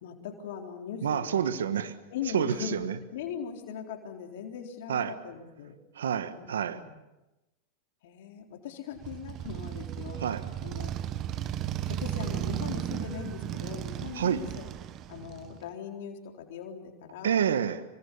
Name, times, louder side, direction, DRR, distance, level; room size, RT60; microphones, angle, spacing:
voice 1, 0.0-1.4 2.1-2.8 3.1-5.7 6.3-6.9 8.0-10.2 10.6-11.0 11.9-14.7 15.1-17.5, left 8 dB, 70° left, 3.9 m, -40 dB
voice 2, 1.0-1.9 2.3-3.0 4.9-5.2 5.9-6.8 10.2-10.4 14.1-14.4 17.2-17.8, right 8 dB, 80° right, 1.4 m, -28 dB
Motorcycle, 9.0-15.7, right 11 dB, 40° right, 1.4 m, -35 dB
27.5 x 24.0 x 7.1 m
hypercardioid pair, 100°, 0 cm